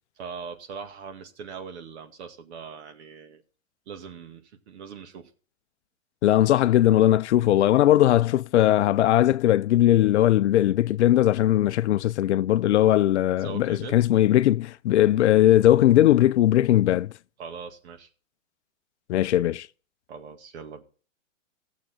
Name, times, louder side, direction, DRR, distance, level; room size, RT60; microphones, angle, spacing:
voice 1, 0.2-3.4 3.9-5.3 13.4-14.0 17.4-18.1 20.1-20.8, right 6 dB, 55° right, 2.1 m, -40 dB
voice 2, 6.2-17.1 19.1-19.7, left 13 dB, 60° left, 0.6 m, -19 dB
16.5 x 7.4 x 4.3 m
hypercardioid pair, 130°, 39 cm